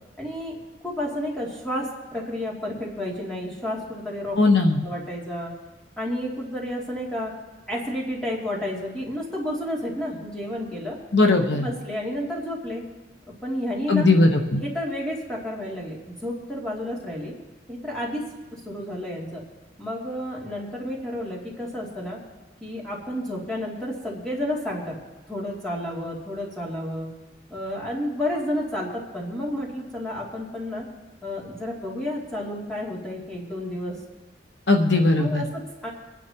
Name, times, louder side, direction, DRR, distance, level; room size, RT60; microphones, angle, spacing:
voice 1, 0.2-0.6 0.8-4.4 4.8-5.5 6.0-7.3 7.7-11.0 11.5-12.8 13.4-14.1 14.6-17.3 17.7-18.2 18.5-19.4 19.8-22.2 22.6-25.0 25.3-27.1 27.5-30.9 31.2-34.0 35.2-35.9, left 1 dB, 5° left, -5 dB, 2.6 m, -31 dB
voice 2, 4.4-4.8 11.1-11.7 13.9-14.6 34.7-35.4, left 2 dB, 70° left, 3 dB, 1.1 m, -18 dB
25.0 x 10.0 x 2.9 m, 1.2 s
head